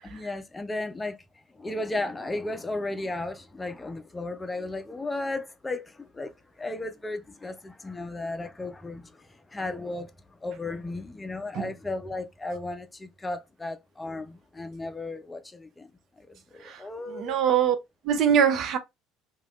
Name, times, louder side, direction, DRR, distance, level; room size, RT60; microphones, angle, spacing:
voice 1, 0.0-1.2 1.5-15.9 16.2-17.4, left 2 dB, 15° left, 0.5 m, -35 dB
voice 2, 17.1-17.8 18.0-18.8, right 8 dB, 50° right, 0.5 m, -22 dB
2.9 x 2.3 x 3.0 m
figure-of-eight pair, 60°, 0 cm